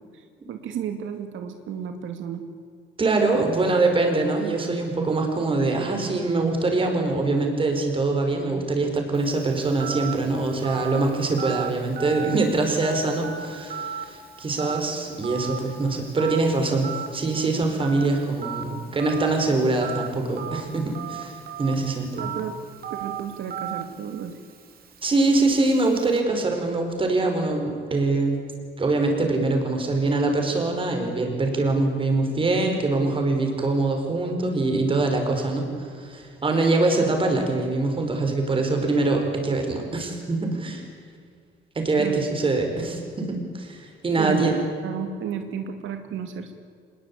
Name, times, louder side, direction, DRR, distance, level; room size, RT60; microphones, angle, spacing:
voice 1, 0.1-2.4 22.1-22.5 22.9-24.3 42.0-42.2 44.2-44.6 44.8-46.5, right 8 dB, 90° right, 6 dB, 2.4 m, -33 dB
voice 2, 3.0-22.3 25.0-28.4 28.8-40.8 41.7-44.5, right 3 dB, 25° right, 3 dB, 5.0 m, -24 dB
Telephone, 9.1-26.2, right 8 dB, 50° right, 3.1 m, -37 dB
26.0 x 21.0 x 8.7 m, 2.1 s
cardioid pair, 160°, 20 cm